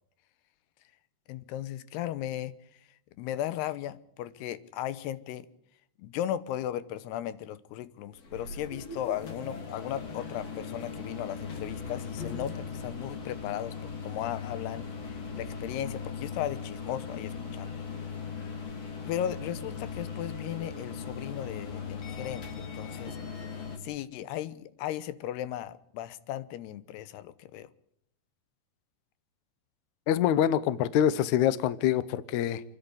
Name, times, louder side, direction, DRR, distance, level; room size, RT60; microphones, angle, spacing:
voice 1, 1.3-2.5 3.2-5.5 6.0-13.7 14.0-17.7 19.1-23.2 23.8-27.7, left 11 dB, 90° left, 15 dB, 3.0 m, -36 dB
sound 1, 8.1-23.8, left 5 dB, 45° left, 3.2 m, -39 dB
voice 2, 30.1-32.6, left 10 dB, 75° left, 16 dB, 1.8 m, -25 dB
29.0 x 11.0 x 9.6 m, 0.74 s
omnidirectional pair, 4.6 m